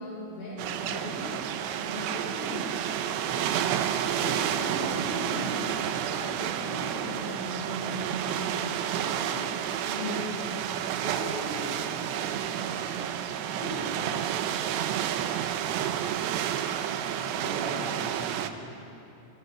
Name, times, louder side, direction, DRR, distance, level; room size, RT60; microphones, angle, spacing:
voice 1, 0.0-3.5 3.9-10.6 11.0-11.8 12.1-13.1 13.5-14.2 15.0-15.1, left 1 dB, 55° left, -7 dB, 8.6 m, -39 dB
sound 1, 0.6-18.5, right 10 dB, 85° right, 2.9 m, -30 dB
voice 2, 17.1-19.1, equal, 45° right, -8 dB, 9.2 m, -41 dB
28.0 x 19.5 x 5.9 m, 2.8 s
omnidirectional pair, 5.0 m